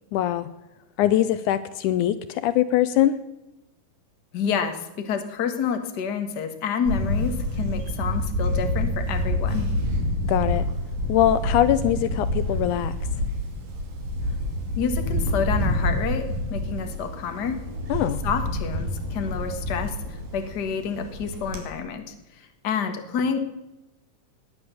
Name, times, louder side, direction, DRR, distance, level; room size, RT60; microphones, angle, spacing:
voice 1, 0.1-0.5 1.0-3.2 10.2-10.6 11.1-12.9 17.9-18.2, left 12 dB, 80° left, 14 dB, 2.1 m, -22 dB
voice 2, 4.3-9.7 14.7-17.6 18.2-23.4, left 6 dB, 40° left, 6 dB, 1.6 m, -29 dB
Camera, 6.9-21.6, left 1 dB, 80° right, 4.2 m, -27 dB
19.0 x 9.8 x 6.9 m, 0.98 s
omnidirectional pair, 3.7 m